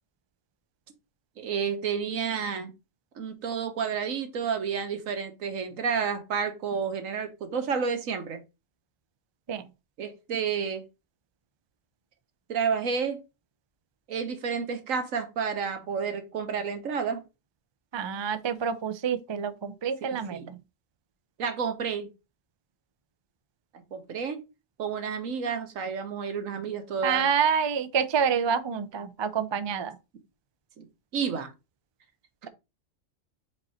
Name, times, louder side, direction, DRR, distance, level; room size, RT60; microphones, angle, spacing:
voice 1, 1.4-2.7 3.2-8.4 10.0-10.8 12.5-13.2 14.1-17.2 20.0-20.5 21.4-22.1 23.9-24.4 24.8-27.3 30.8-30.9 31.1-31.5 32.4-32.5, right 6 dB, 85° right, 1.4 m, -30 dB
voice 2, 17.9-20.4 27.0-29.9, right 7 dB, 40° right, 0.4 m, -27 dB
5.2 x 4.3 x 4.2 m
omnidirectional pair, 1.3 m